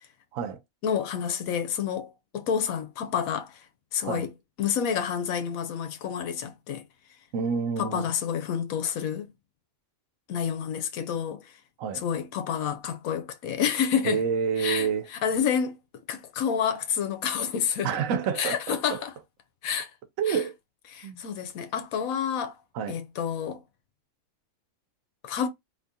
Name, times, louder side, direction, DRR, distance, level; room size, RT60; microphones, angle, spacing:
voice 1, 0.8-3.6 3.9-4.3 4.6-6.8 7.8-9.3 10.3-11.5 11.9-14.2 14.6-15.8 16.1-17.9 18.4-19.1 19.6-19.9 20.3-20.4 20.9-22.6 22.9-23.6 25.2-25.5, left 8 dB, 85° left, 1.1 m, -29 dB
voice 2, 7.3-8.1 11.8-12.0 14.0-15.1 17.8-19.0 20.2-20.5 21.0-21.2 22.7-23.0, right 6 dB, 80° right, 1.0 m, -28 dB
3.6 x 2.8 x 2.7 m
omnidirectional pair, 1.4 m